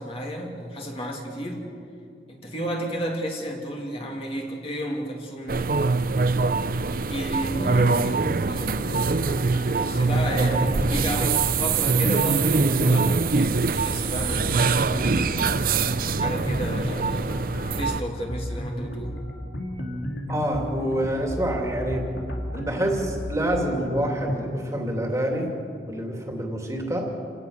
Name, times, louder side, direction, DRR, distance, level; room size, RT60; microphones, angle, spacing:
voice 1, 0.0-1.7 2.3-5.9 7.1-9.1 9.7-15.6 16.1-19.2, equal, 35° left, 0 dB, 2.7 m, -32 dB
sound 1, 5.5-18.0, right 4 dB, 55° right, 0.6 m, -23 dB
sound 2, 7.4-24.4, equal, 90° left, 3.1 m, -34 dB
voice 2, 20.3-22.1 22.5-25.5 25.9-27.1, right 1 dB, 20° right, 1 dB, 2.8 m, -27 dB
28.5 x 17.5 x 6.6 m, 2.5 s
head